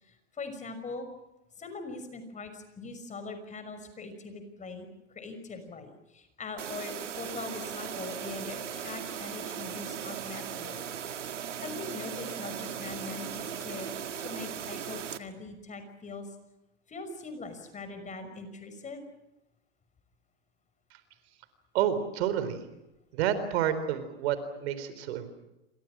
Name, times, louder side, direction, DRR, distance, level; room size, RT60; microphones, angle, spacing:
voice 1, 0.0-1.1 1.6-10.8 11.6-16.3 16.9-19.0, left 3 dB, 20° left, 9 dB, 5.9 m, -42 dB
sound 1, 6.6-15.2, right 8 dB, 85° right, 2.1 m, -38 dB
voice 2, 21.7-22.6 23.1-25.3, right 10 dB, 60° right, 12 dB, 4.2 m, -29 dB
28.5 x 26.0 x 6.2 m, 0.95 s
hypercardioid pair, 110°, 36 cm